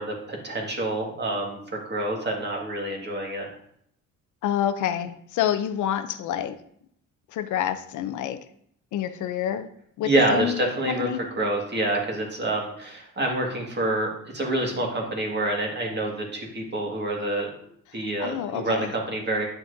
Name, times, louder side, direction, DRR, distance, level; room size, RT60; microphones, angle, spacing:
voice 1, 0.0-3.5 10.0-11.1 11.4-17.5 17.9-19.5, right 2 dB, 35° right, 0 dB, 1.9 m, -27 dB
voice 2, 4.4-6.5 7.3-8.4 8.9-9.7 10.0-10.6 10.9-11.2 18.2-18.9, left 10 dB, 80° left, 10 dB, 0.6 m, -27 dB
8.0 x 5.9 x 2.7 m, 0.68 s
cardioid pair, 90°, 30 cm